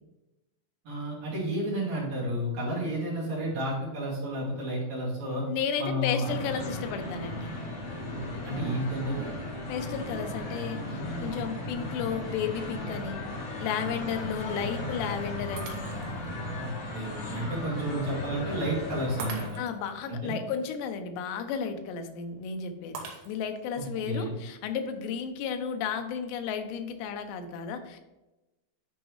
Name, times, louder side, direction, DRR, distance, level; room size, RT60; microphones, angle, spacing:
voice 1, 0.8-5.4 5.8-6.3 6.6-6.7 8.1-9.3 16.6-19.6 20.1-20.4 23.7-24.3, right 1 dB, 45° right, -6 dB, 3.1 m, -31 dB
voice 2, 5.5-7.5 9.7-13.2 13.6-15.9 19.6-23.0 23.3-28.0, left 7 dB, 85° left, 7 dB, 2.8 m, -33 dB
sound 1, 6.2-19.5, left 1 dB, 65° left, 1.3 m, -36 dB
Shatter, 15.6-16.3 16.8-16.9 19.2-19.9 22.9-23.7, right 5 dB, 75° right, 2.8 m, -42 dB
10.5 x 4.6 x 3.1 m, 1.0 s
omnidirectional pair, 4.9 m